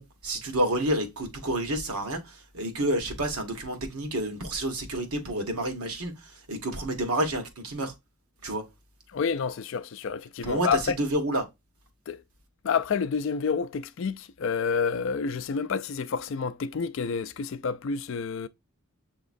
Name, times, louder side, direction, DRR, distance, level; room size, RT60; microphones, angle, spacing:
voice 1, 0.0-7.9 8.4-8.7 10.4-11.4, right 1 dB, 80° right, 1.2 m, -29 dB
voice 2, 9.1-10.9 12.1-12.2 12.6-18.5, left 5 dB, 55° left, 0.4 m, -29 dB
7.0 x 2.9 x 2.5 m
head